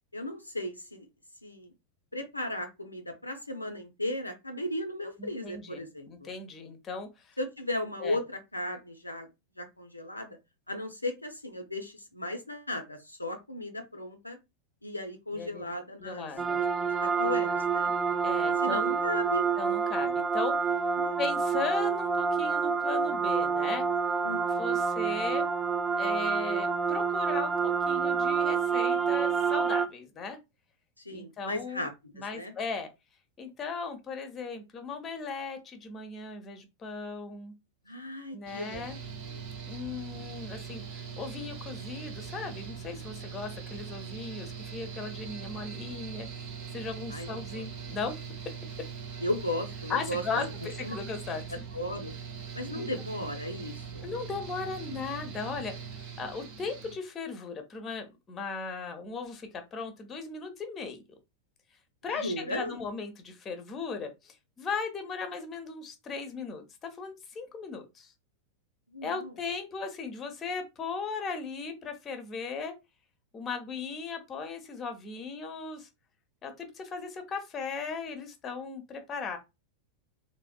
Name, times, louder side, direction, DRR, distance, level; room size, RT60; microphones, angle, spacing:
voice 1, 0.1-1.1 1.4-1.7 2.1-6.3 7.4-9.3 9.6-10.4 10.7-14.4 14.8-17.9 18.6-19.5 21.0-21.2 24.2-24.8 31.0-32.5 37.9-38.9 39.2-39.4 47.1-47.6 49.2-50.5 50.8-51.0 51.7-52.1 52.5-54.1 62.1-62.8 68.9-69.3, left 1 dB, 85° left, 0.4 m, -36 dB
voice 2, 5.2-7.3 8.0-8.2 15.3-15.7 16.0-16.6 18.2-18.9 19.6-20.8 21.2-23.8 24.6-25.5 26.0-30.4 31.1-31.8 32.2-32.9 33.4-37.5 38.3-39.0 39.6-46.3 46.7-48.1 49.9-51.6 52.7-52.9 54.0-55.9 56.2-61.0 62.0-68.1 69.0-72.7 73.3-75.9 76.4-79.4, left 4 dB, 25° left, 0.7 m, -37 dB
sound 1, 16.4-29.9, right 5 dB, 15° right, 0.3 m, -28 dB
Mechanical fan, 38.5-56.9, right 6 dB, 45° right, 0.8 m, -41 dB
3.3 x 2.1 x 2.2 m
figure-of-eight pair, 90°, 0 cm